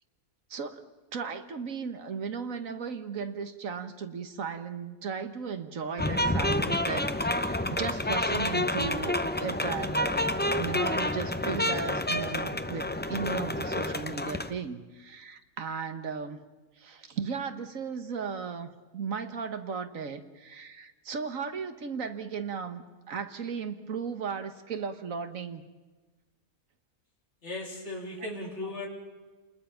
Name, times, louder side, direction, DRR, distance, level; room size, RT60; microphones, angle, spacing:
voice 1, 0.5-0.8 1.1-16.4 16.8-25.6, right 6 dB, 60° right, 9 dB, 1.6 m, -36 dB
sound 1, 6.0-14.5, left 1 dB, 15° left, 0.4 m, -29 dB
voice 2, 27.4-28.9, left 2 dB, 45° left, -1 dB, 4.0 m, -37 dB
28.5 x 20.5 x 5.8 m, 1.3 s
omnidirectional pair, 1.6 m